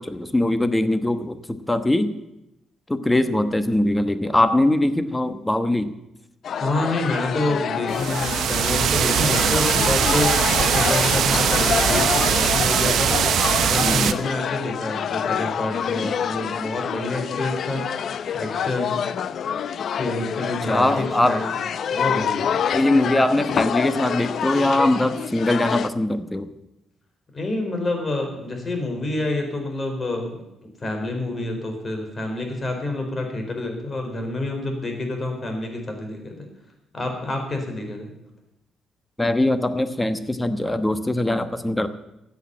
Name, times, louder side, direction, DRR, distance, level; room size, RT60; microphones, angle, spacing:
voice 1, 0.0-2.1 2.9-5.9 13.8-14.1 20.7-21.4 22.7-26.5 39.2-41.9, left 1 dB, 10° left, 11 dB, 1.1 m, -21 dB
sound 1, 6.4-25.9, left 8 dB, 60° left, 0.6 m, -27 dB
voice 2, 6.6-10.3 10.6-13.1 13.6-19.0 20.0-21.5 21.9-22.6 27.3-30.4 30.8-36.4 36.9-38.1, left 2 dB, 30° left, 4 dB, 4.4 m, -28 dB
sound 2, 7.9-14.1, right 9 dB, 70° right, 0.9 m, -21 dB
14.0 x 8.2 x 9.5 m, 0.89 s
cardioid pair, 90°, 0 cm